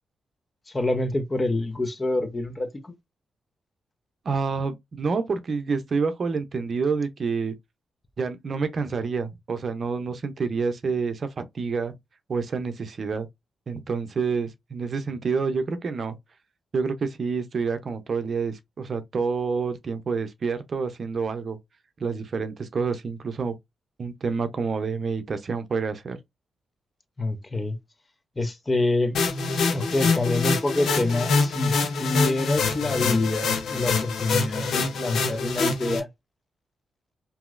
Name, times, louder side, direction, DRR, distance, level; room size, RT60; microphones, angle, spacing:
voice 1, 0.7-2.9 27.2-27.8 28.4-29.2 29.7-31.7 32.0-36.1, left 2 dB, 30° left, 0.8 m, -26 dB
voice 2, 4.2-7.5 8.2-11.9 12.3-13.3 13.7-16.2 16.7-21.6 22.0-23.5 24.0-26.2, right 5 dB, 55° right, 0.6 m, -28 dB
sound 1, 29.1-36.0, left 4 dB, 75° left, 0.6 m, -25 dB
2.9 x 2.7 x 2.4 m
supercardioid pair, 50°, 0 cm